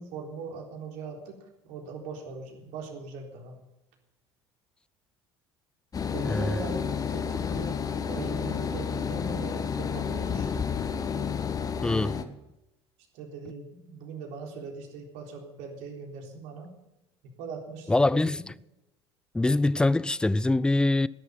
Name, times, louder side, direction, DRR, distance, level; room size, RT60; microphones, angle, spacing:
voice 1, 0.0-1.4 1.6-3.6 6.0-6.8 7.1-10.5 13.1-16.7 17.4-18.4, right 4 dB, 55° right, 3.9 m, -40 dB
sound 1, 5.9-12.2, left 6 dB, 25° left, 1.3 m, -30 dB
voice 2, 6.2-6.6 11.8-12.2 17.9-18.5 19.3-21.1, left 2 dB, 5° left, 0.4 m, -24 dB
19.0 x 11.0 x 5.7 m
figure-of-eight pair, 65°, 15 cm